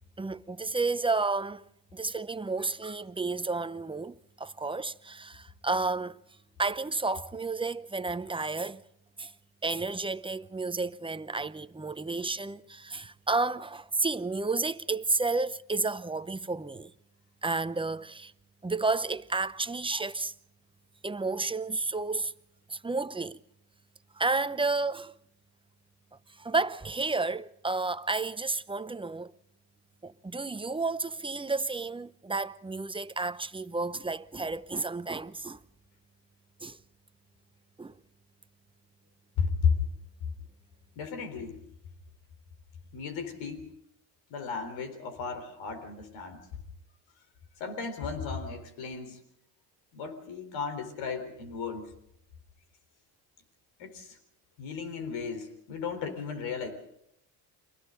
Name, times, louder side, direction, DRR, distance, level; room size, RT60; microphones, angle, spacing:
voice 1, 0.2-6.2 6.6-8.8 9.2-9.3 9.6-16.9 17.4-18.3 18.6-20.3 21.0-22.3 22.7-23.4 24.1-25.1 26.4-29.3 30.0-35.6 36.6-36.8 37.8-38.0, right 3 dB, 10° right, 0.8 m, -31 dB
voice 2, 39.4-39.8 41.0-41.6 42.9-43.7 44.3-46.4 47.6-49.2 49.9-51.9 53.8-54.2 54.6-56.7, left 5 dB, 80° left, 3.9 m, -34 dB
30.0 x 23.5 x 3.9 m
supercardioid pair, 80°, 45 cm